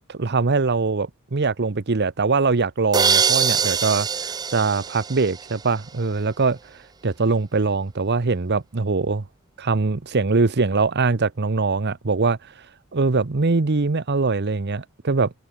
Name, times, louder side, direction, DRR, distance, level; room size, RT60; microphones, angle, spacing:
voice 1, 0.1-6.6 7.0-9.2 9.6-12.4 12.9-15.3, right 4 dB, 50° right, 0.8 m, -22 dB
sound 1, 2.9-5.8, right 6 dB, 20° right, 0.4 m, -23 dB
head